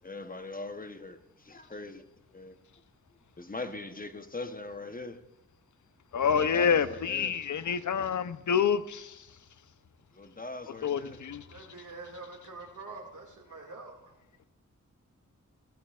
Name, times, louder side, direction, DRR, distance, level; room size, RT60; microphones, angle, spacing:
voice 1, 0.0-2.0 2.3-2.6 3.4-5.2 6.2-7.3 10.1-11.2, left 2 dB, 30° left, 0.8 m, -41 dB
voice 2, 6.1-9.2 10.8-11.4, left 7 dB, 70° left, 0.6 m, -27 dB
voice 3, 11.5-14.1, right 3 dB, 70° right, 2.0 m, -45 dB
15.5 x 13.0 x 2.4 m
wide cardioid pair, 80°, 31 cm